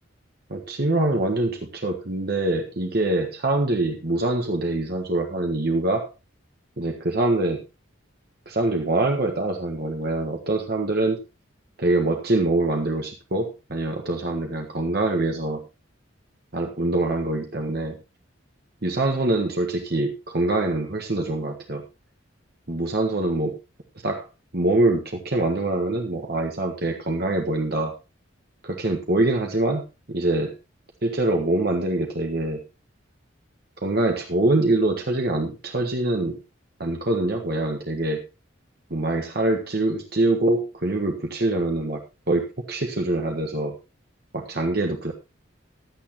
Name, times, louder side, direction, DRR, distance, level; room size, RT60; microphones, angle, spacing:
voice 1, 0.5-6.1 6.8-7.6 8.5-11.2 11.8-15.6 16.5-18.0 18.8-21.8 22.7-23.6 24.0-24.3 24.5-28.0 28.6-29.8 30.1-30.5 31.0-32.6 33.8-36.4 36.8-38.2 38.9-42.0 42.3-43.8 44.3-45.1, right 2 dB, 50° right, 3 dB, 1.5 m, -24 dB
15.0 x 11.0 x 3.0 m, 0.26 s
head